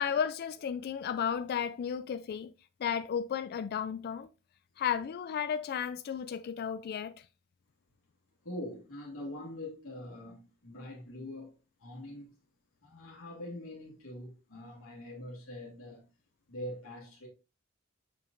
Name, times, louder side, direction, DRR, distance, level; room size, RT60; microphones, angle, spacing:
voice 1, 0.0-2.5 2.8-4.3 4.8-7.1, left 8 dB, 50° left, 0.3 m, -33 dB
voice 2, 8.4-12.3 12.8-16.1 16.5-17.3, left 1 dB, 70° left, 1.8 m, -43 dB
6.9 x 5.7 x 2.5 m
head